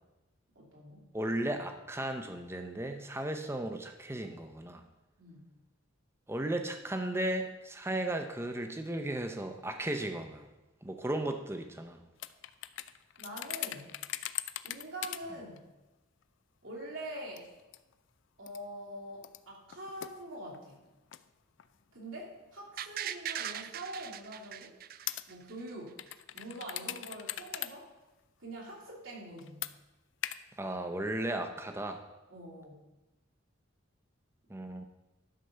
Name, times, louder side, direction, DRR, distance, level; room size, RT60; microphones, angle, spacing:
voice 1, 0.5-1.0 5.2-5.4 13.2-14.0 14.6-15.6 16.6-17.5 18.4-20.8 21.9-24.8 25.3-26.0 26.3-27.9 28.4-29.7 32.3-32.8, right 1 dB, 80° right, -3 dB, 2.8 m, -44 dB
voice 2, 1.1-4.8 6.3-10.5 10.8-12.0 30.6-32.0 34.5-34.9, right 1 dB, 15° right, 6 dB, 0.7 m, -35 dB
sound 1, 12.2-15.2 15.6-15.7 16.2-16.3 17.4-17.9 18.5-18.6 19.2-21.2 21.6-21.7 22.5-22.7 23.7-23.8 25.1-25.2 26.0-27.7 28.0-28.1 29.4-29.7 30.2-30.4, left 13 dB, 65° left, 0.4 m, -40 dB
sound 2, 22.8-25.7 26.1-26.2, right 10 dB, 45° right, 0.4 m, -39 dB
11.5 x 4.2 x 6.7 m, 1.0 s
head